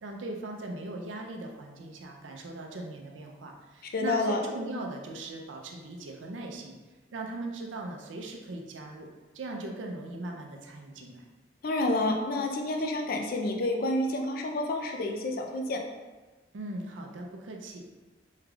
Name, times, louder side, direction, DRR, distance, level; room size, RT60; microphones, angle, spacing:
voice 1, 0.0-6.7 7.1-9.1 9.3-11.3 16.5-17.8, right 2 dB, 80° right, 1 dB, 0.5 m, -39 dB
voice 2, 3.8-4.4 11.6-15.8, left 2 dB, 50° left, 2 dB, 0.4 m, -29 dB
3.5 x 3.3 x 2.3 m, 1.2 s
head